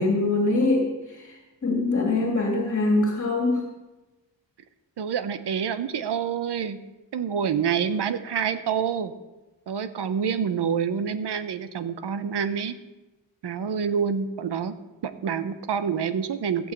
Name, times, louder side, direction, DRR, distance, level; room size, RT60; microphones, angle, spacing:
voice 1, 0.0-1.3 1.6-3.6, left 2 dB, 30° left, 0 dB, 2.2 m, -23 dB
voice 2, 5.0-6.8 7.1-9.1 9.7-12.8 13.4-14.7 15.0-16.7, right 7 dB, 65° right, 11 dB, 0.9 m, -27 dB
15.0 x 6.4 x 7.9 m, 1.1 s
wide cardioid pair, 135°, 44 cm